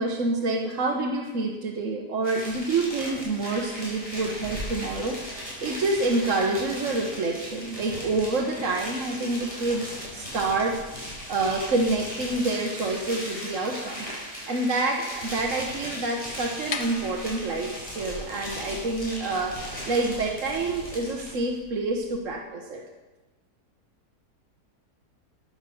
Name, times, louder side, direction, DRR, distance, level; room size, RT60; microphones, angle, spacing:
voice 1, 0.0-19.5 19.9-22.8, right 2 dB, 50° right, 0 dB, 1.4 m, -27 dB
sound 1, 2.2-21.4, equal, 20° left, 5.7 m, -37 dB
sound 2, 16.4-22.4, left 5 dB, 70° left, 1.6 m, -43 dB
12.5 x 9.8 x 6.9 m, 1.2 s
omnidirectional pair, 1.7 m